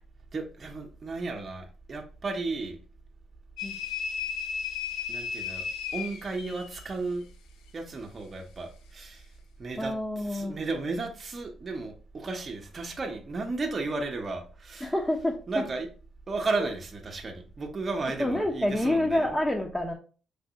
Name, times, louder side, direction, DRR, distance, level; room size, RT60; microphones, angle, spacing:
voice 1, 0.3-2.8 5.1-5.7 5.9-7.3 7.7-9.3 9.6-14.9 15.5-15.9 16.3-19.3, right 3 dB, 40° right, 0.9 m, -34 dB
sound 1, 3.6-6.9, left 7 dB, 80° left, 0.7 m, -34 dB
voice 2, 9.8-10.6 14.8-15.6 16.6-16.7 18.2-19.9, left 1 dB, 10° left, 0.9 m, -28 dB
5.1 x 3.4 x 2.9 m
supercardioid pair, 65°, 0 cm